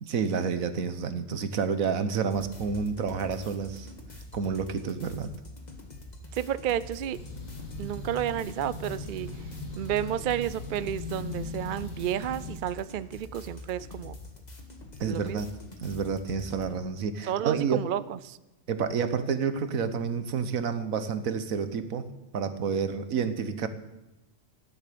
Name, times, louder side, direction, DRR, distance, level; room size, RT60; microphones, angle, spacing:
voice 1, 0.0-3.9 4.3-5.3 15.0-15.5 15.8-17.8 18.7-22.0 22.3-23.7, right 6 dB, 85° right, 11 dB, 1.4 m, -29 dB
sound 1, 2.3-16.7, left 2 dB, 30° left, 1.9 m, -45 dB
voice 2, 6.3-7.2 7.8-9.3 9.8-14.2 15.0-15.4 17.3-18.4, right 10 dB, 60° right, 16 dB, 0.5 m, -31 dB
sound 2, 7.1-12.6, left 2 dB, 80° left, 2.7 m, -39 dB
14.0 x 11.0 x 6.9 m, 0.98 s
omnidirectional pair, 1.4 m